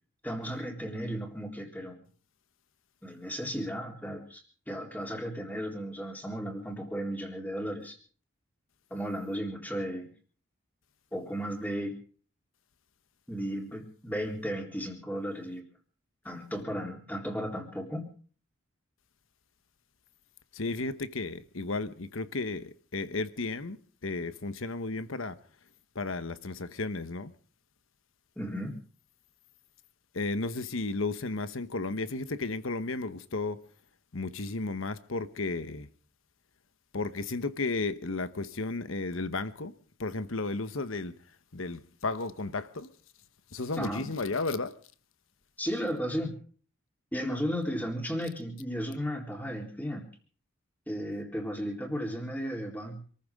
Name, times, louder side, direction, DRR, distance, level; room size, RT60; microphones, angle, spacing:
voice 1, 0.2-2.0 3.0-8.0 8.9-10.1 11.1-12.0 13.3-15.6 16.2-18.1 28.4-28.8 43.8-44.1 45.6-46.4 47.1-50.1 50.9-53.0, equal, 10° left, 3.9 m, -35 dB
voice 2, 20.5-23.8 24.0-25.4 25.9-27.3 30.1-33.6 34.1-35.9 36.9-39.7 40.0-41.2 41.5-42.9 43.5-44.8, left 3 dB, 70° left, 1.1 m, -33 dB
27.0 x 14.5 x 3.7 m
head